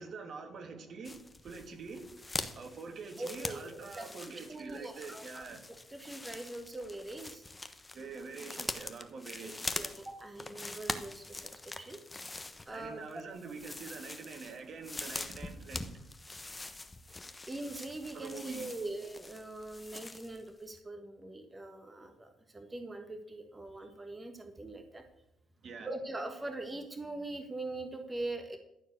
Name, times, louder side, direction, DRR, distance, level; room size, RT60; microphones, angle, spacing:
voice 1, 0.0-2.0 2.5-5.6 7.9-10.0 12.7-16.1 18.1-18.9 25.6-25.9, right 4 dB, 55° right, 2.0 m, -45 dB
sound 1, 1.0-20.5 20.8-20.9, left 2 dB, 20° left, 1.1 m, -43 dB
voice 2, 3.2-4.1 4.5-5.4 5.9-7.4 9.4-12.0 12.7-13.0 17.5-25.0 25.8-28.6, right 2 dB, 20° right, 1.4 m, -42 dB
13.5 x 4.7 x 8.1 m
supercardioid pair, 70°, 0 cm